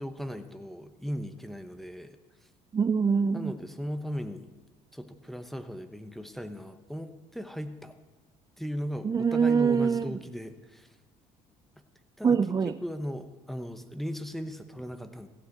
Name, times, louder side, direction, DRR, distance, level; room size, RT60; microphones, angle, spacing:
voice 1, 0.0-2.5 3.3-4.5 4.9-8.0 8.6-11.0 12.2-12.4 12.8-15.3, equal, ahead, 8 dB, 1.0 m, -37 dB
voice 2, 2.7-3.5 9.0-10.2 12.2-12.8, right 6 dB, 25° right, 12 dB, 0.4 m, -24 dB
15.0 x 5.8 x 7.9 m, 1.2 s
hypercardioid pair, 60°, 17 cm